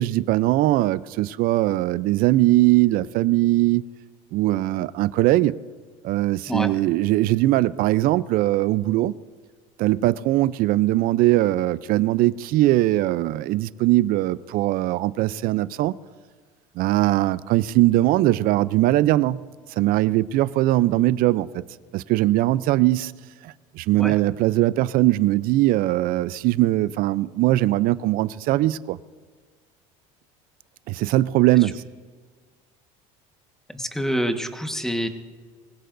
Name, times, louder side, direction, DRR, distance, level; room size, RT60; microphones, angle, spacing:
voice 1, 0.0-3.8 4.3-5.5 6.0-9.1 9.8-15.9 16.8-19.4 19.8-21.5 21.9-23.1 23.4-29.0 30.9-31.8, right 16 dB, 60° right, 0.5 m, -20 dB
voice 2, 33.7-35.1, equal, 5° left, 1.4 m, -26 dB
23.5 x 16.5 x 2.6 m
supercardioid pair, 95°, 17 cm